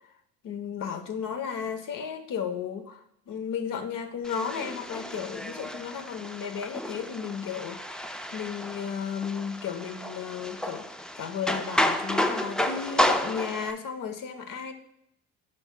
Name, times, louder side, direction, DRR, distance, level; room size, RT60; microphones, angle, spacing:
voice 1, 0.4-10.9 11.2-14.7, left 7 dB, 55° left, 8 dB, 0.9 m, -34 dB
sound 1, 4.2-13.7, left 1 dB, ahead, 0.3 m, -31 dB
9.7 x 5.4 x 2.2 m, 0.79 s
supercardioid pair, 80°, 39 cm